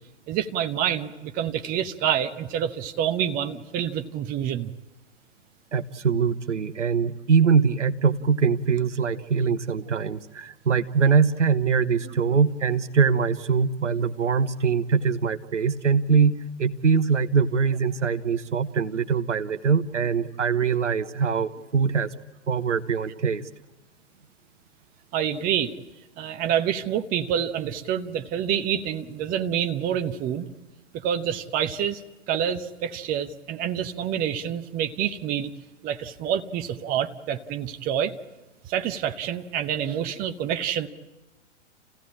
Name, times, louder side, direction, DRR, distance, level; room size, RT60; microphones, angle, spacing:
voice 1, 0.3-4.7 25.1-25.7 26.2-30.5 30.9-32.0 32.3-35.5 35.8-38.1 38.7-40.9, right 9 dB, 25° right, 7 dB, 0.9 m, -27 dB
voice 2, 5.7-22.1 22.5-23.4, right 6 dB, 75° right, 10 dB, 1.0 m, -23 dB
28.5 x 16.0 x 8.6 m, 1.2 s
figure-of-eight pair, 110°, 36 cm